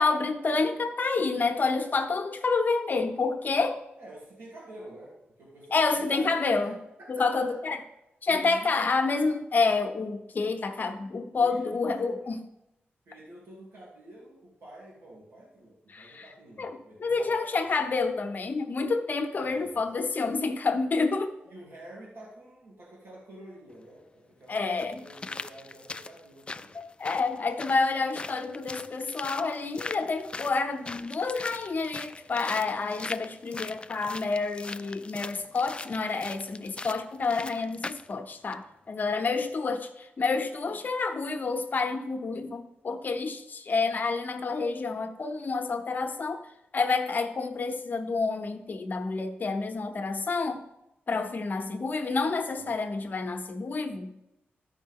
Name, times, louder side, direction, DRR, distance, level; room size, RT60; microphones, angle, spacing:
voice 1, 0.0-3.8 5.7-6.7 7.1-7.8 8.2-12.4 15.9-16.2 16.6-21.4 24.5-25.0 26.7-46.4 46.7-50.6 51.1-54.1, left 4 dB, 50° left, 7 dB, 0.9 m, -28 dB
voice 2, 4.0-5.1 5.4-5.8 6.1-6.7 7.0-7.8 8.3-8.9 11.4-12.3 13.0-17.4 19.3-20.1 21.5-24.6 25.0-26.8 52.6-52.8, right 1 dB, 85° right, -7 dB, 2.9 m, -48 dB
sound 1, 23.7-23.8 24.5-38.1 38.5-38.6, left 3 dB, 25° left, 0.3 m, -41 dB
13.5 x 5.2 x 3.7 m, 0.88 s
wide cardioid pair, 110°, 4 cm